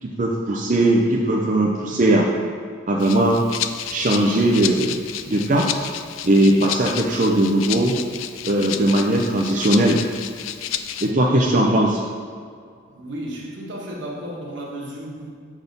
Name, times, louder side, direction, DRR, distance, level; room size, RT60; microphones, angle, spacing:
voice 1, 0.0-2.3 2.9-3.4 3.9-5.0 5.3-5.7 6.2-8.0 8.4-10.0 11.0-12.0, right 1 dB, 40° right, -2 dB, 0.5 m, -19 dB
Rattle (instrument), 3.0-11.1, left 10 dB, 90° left, 0.4 m, -31 dB
voice 2, 12.9-15.3, right 1 dB, 65° right, -2 dB, 1.4 m, -33 dB
7.2 x 4.1 x 5.3 m, 2.2 s
head